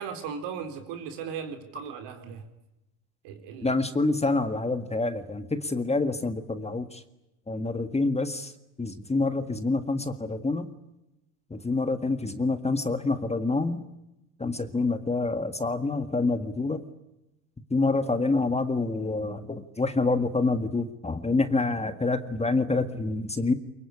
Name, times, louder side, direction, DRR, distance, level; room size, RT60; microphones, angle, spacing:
voice 1, 0.0-2.4 3.2-3.7, right 7 dB, 65° right, 7 dB, 4.1 m, -37 dB
voice 2, 3.6-7.0 7.5-8.5 8.8-10.7 11.5-13.8 14.4-16.8 17.7-23.5, left 3 dB, 15° left, 10 dB, 1.8 m, -27 dB
23.5 x 22.5 x 9.9 m, 0.93 s
hypercardioid pair, 80°, 45 cm